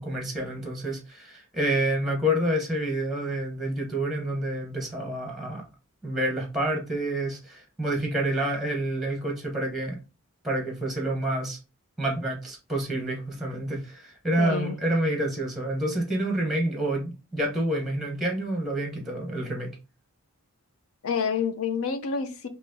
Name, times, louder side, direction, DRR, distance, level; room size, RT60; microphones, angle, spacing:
voice 1, 0.0-5.7 6.0-10.0 10.4-11.6 12.0-19.8, right 1 dB, ahead, 0.9 m, -28 dB
voice 2, 14.4-14.8 21.0-22.5, left 6 dB, 75° left, 0.5 m, -28 dB
4.1 x 2.8 x 2.6 m
head